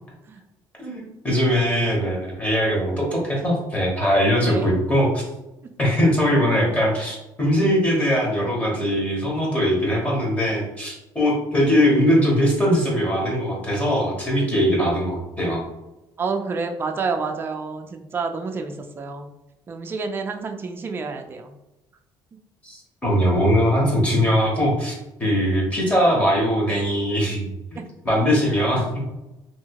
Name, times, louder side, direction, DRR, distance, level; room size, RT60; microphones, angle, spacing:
voice 1, 0.8-5.2 5.8-15.6 22.6-24.9 25.2-27.5 27.7-29.0, equal, 15° left, -3 dB, 0.9 m, -21 dB
voice 2, 16.2-19.3 19.7-21.5 27.7-27.8, right 4 dB, 25° right, 5 dB, 0.3 m, -29 dB
2.8 x 2.7 x 2.8 m, 0.96 s
cardioid pair, 155°, 9 cm